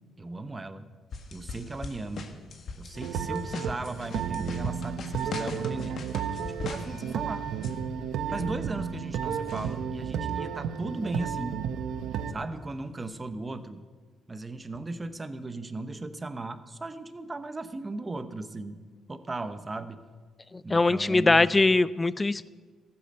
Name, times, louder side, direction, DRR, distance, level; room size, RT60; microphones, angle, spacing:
voice 1, 0.2-0.9 1.3-2.3 2.8-6.0 6.3-7.5 8.3-11.6 12.3-13.8 14.3-18.8 19.1-20.0 20.6-21.5, right 2 dB, 20° right, 10 dB, 0.9 m, -37 dB
sound 1, 1.1-7.8 9.5-9.8 10.3-10.4 11.5-11.6 13.1-13.2, left 4 dB, 55° left, 1.4 m, -40 dB
sound 2, 3.0-12.3, right 7 dB, 75° right, 0.9 m, -32 dB
voice 2, 20.7-22.5, left 2 dB, 20° left, 18 dB, 0.4 m, -22 dB
14.5 x 8.6 x 6.5 m, 1.5 s
cardioid pair, 95°, 0 cm